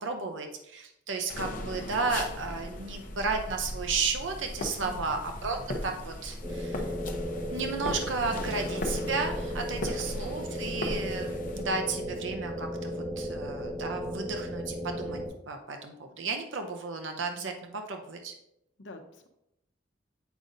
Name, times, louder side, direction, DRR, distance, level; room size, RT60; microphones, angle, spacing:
voice 1, 0.0-6.9 7.5-15.2 15.5-18.3, right 4 dB, 80° right, 5 dB, 0.7 m, -33 dB
sound 1, 1.3-11.6, left 1 dB, 45° left, 0.7 m, -37 dB
voice 2, 4.8-5.2 9.8-10.0 18.8-19.3, left 2 dB, 70° left, 5 dB, 0.8 m, -46 dB
sound 2, 6.4-15.3, equal, 15° right, 1.9 m, -35 dB
8.1 x 5.0 x 2.7 m, 0.81 s
head